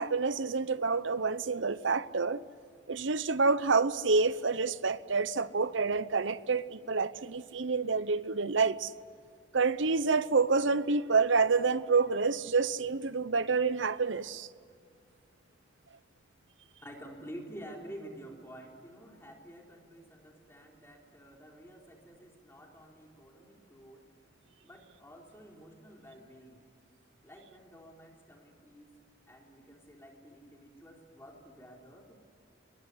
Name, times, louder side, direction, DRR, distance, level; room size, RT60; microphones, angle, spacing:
voice 1, 0.0-2.4 2.9-8.9 9.5-14.5, right 4 dB, 80° right, 0.9 m, -28 dB
voice 2, 16.8-24.0 24.6-26.6 27.2-28.9 29.3-32.2, equal, 15° left, 3.9 m, -50 dB
25.0 x 22.5 x 9.7 m
head